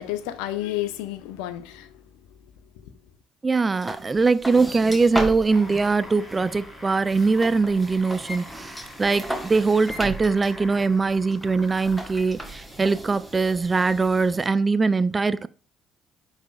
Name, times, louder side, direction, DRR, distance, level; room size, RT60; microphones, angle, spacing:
voice 1, 0.0-2.0, left 14 dB, 70° left, 0.6 m, -31 dB
voice 2, 3.4-15.5, right 4 dB, 25° right, 0.4 m, -22 dB
sound 1, 3.7-14.5, right 1 dB, ahead, 1.6 m, -36 dB
sound 2, 5.5-12.3 13.1-13.2, left 1 dB, 20° left, 3.5 m, -44 dB
10.0 x 4.1 x 2.4 m
figure-of-eight pair, 50°, 0 cm